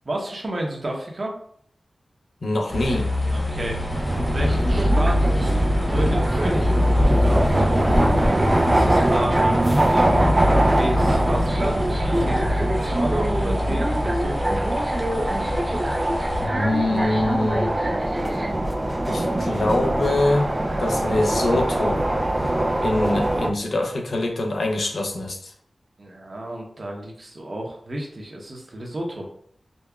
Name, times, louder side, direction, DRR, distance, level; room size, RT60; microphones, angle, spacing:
voice 1, 0.0-1.3 3.2-3.8 4.2-5.5 5.8-8.2 8.7-10.2 10.8-11.9 12.2-14.6 26.0-29.3, right 1 dB, 50° right, 0 dB, 0.8 m, -31 dB
voice 2, 2.4-3.1 16.4-17.7 19.1-20.5 20.8-22.1 22.8-25.5, left 2 dB, 80° left, 2 dB, 0.6 m, -24 dB
sound 1, 2.7-16.4, left 1 dB, 25° left, 1.1 m, -24 dB
sound 2, 3.9-23.5, right 1 dB, 30° right, 0.4 m, -22 dB
5.2 x 2.1 x 2.3 m, 0.64 s
wide cardioid pair, 60°, 0 cm